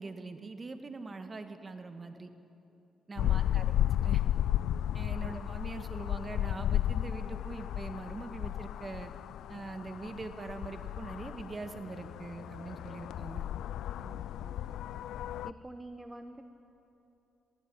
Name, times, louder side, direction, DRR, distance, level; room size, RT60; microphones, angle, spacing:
voice 1, 0.0-2.3 3.1-4.2 4.9-9.1 9.5-13.4, right 3 dB, 30° right, 8 dB, 1.6 m, -43 dB
sound 1, 3.2-15.5, left 12 dB, 80° left, 0.4 m, -33 dB
voice 2, 3.3-3.6 5.2-5.4 14.0-14.6 15.4-16.4, right 1 dB, 10° right, 7 dB, 1.0 m, -48 dB
21.5 x 15.0 x 8.7 m, 2.9 s
cardioid pair, 90°, 0 cm